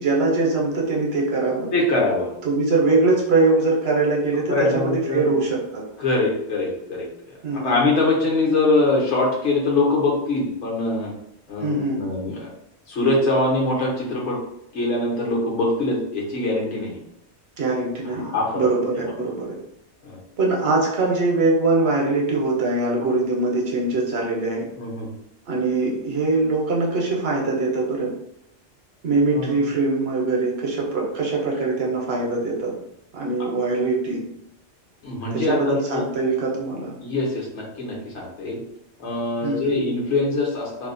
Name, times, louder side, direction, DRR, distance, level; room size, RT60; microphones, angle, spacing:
voice 1, 0.0-1.7 2.4-5.8 7.4-7.8 11.6-12.0 17.6-19.5 20.4-24.7 25.5-28.1 29.0-32.7 33.1-34.2 35.3-36.9 39.4-39.8, right 3 dB, 70° right, -1 dB, 0.9 m, -22 dB
voice 2, 1.7-2.3 4.5-5.3 6.0-7.1 7.5-11.1 11.5-12.5 12.9-14.4 14.7-17.0 18.1-18.7 18.9-19.1 20.0-20.2 24.8-25.1 29.3-29.7 33.4-33.5 35.0-36.0 37.0-38.6 39.0-40.9, left 2 dB, 80° left, -3 dB, 1.1 m, -23 dB
2.6 x 2.0 x 2.5 m, 0.77 s
omnidirectional pair, 1.2 m